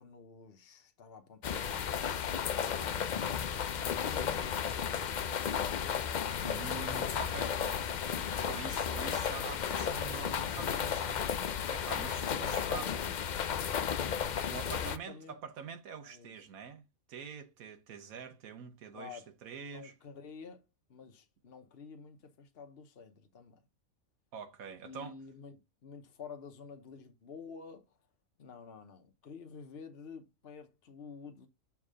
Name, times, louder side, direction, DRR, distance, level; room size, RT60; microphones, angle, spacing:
voice 1, 0.0-2.3 2.8-6.2 6.4-7.7 11.9-13.2 13.6-15.4 16.0-16.3 18.9-19.3 19.7-23.6 24.8-28.0 28.4-31.5, left 5 dB, 50° left, 1.1 m, -51 dB
sound 1, 1.4-15.0, left 8 dB, 85° left, 0.4 m, -34 dB
voice 2, 6.4-7.8 8.4-11.2 11.7-12.9 14.3-19.9 24.3-25.2, right 6 dB, 85° right, 1.3 m, -45 dB
7.1 x 3.5 x 4.9 m
omnidirectional pair, 1.4 m